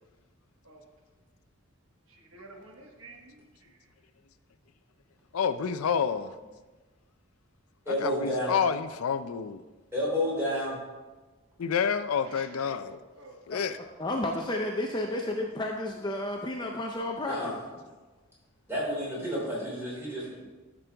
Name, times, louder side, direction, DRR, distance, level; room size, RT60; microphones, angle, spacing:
voice 1, 2.1-3.9 12.2-13.4 15.9-16.0 19.9-20.4, right 2 dB, 65° right, 2 dB, 1.2 m, -51 dB
voice 2, 5.3-6.4 7.9-9.6 11.6-13.0 13.5-13.8, left 6 dB, 80° left, 11 dB, 0.4 m, -29 dB
voice 3, 7.8-8.5 9.9-10.7 17.3-17.5 18.7-20.3, equal, 10° right, -6 dB, 3.1 m, -30 dB
voice 4, 14.0-17.6, left 1 dB, 20° left, 1 dB, 0.5 m, -32 dB
12.5 x 6.1 x 3.4 m, 1.2 s
head